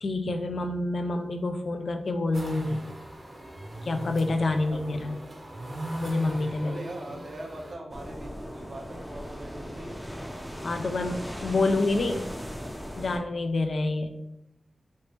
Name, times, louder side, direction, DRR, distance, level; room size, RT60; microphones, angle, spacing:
voice 1, 0.0-2.8 3.8-5.2 6.0-6.8 10.6-12.3 13.0-14.1, left 2 dB, 70° left, 6 dB, 0.3 m, -27 dB
sound 1, 2.3-7.7, right 1 dB, 40° right, 0.7 m, -39 dB
voice 2, 4.6-5.2 6.6-10.0, right 1 dB, 75° right, 0 dB, 0.7 m, -41 dB
sound 2, 7.9-13.2, equal, ahead, 0.5 m, -38 dB
3.3 x 2.8 x 2.9 m, 0.86 s
wide cardioid pair, 75°, 0 cm